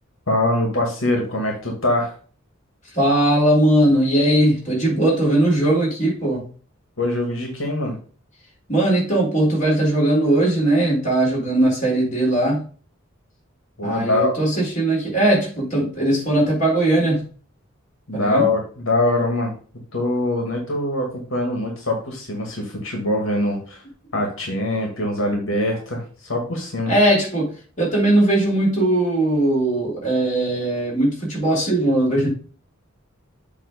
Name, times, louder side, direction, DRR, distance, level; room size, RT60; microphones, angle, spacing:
voice 1, 0.3-2.1 7.0-8.0 13.8-14.3 18.1-19.5 19.9-23.8 24.1-26.9, left 2 dB, 90° left, 2.1 m, -23 dB
voice 2, 2.9-6.4 8.7-12.6 13.8-17.2 18.1-18.5 26.9-32.3, right 1 dB, 40° left, 4.2 m, -19 dB
7.8 x 3.6 x 5.1 m
head